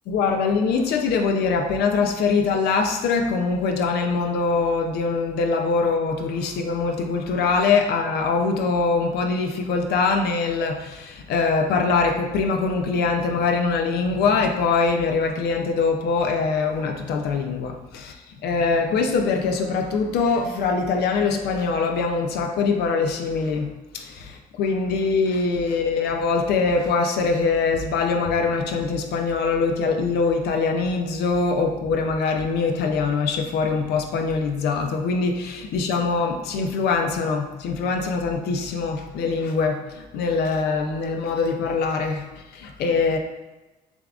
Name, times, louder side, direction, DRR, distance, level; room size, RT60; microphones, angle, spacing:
voice 1, 0.1-18.1 18.4-42.3 42.5-43.2, left 4 dB, 70° left, 4 dB, 0.5 m, -23 dB
6.9 x 2.3 x 2.4 m, 1.1 s
cardioid pair, 110°, 17 cm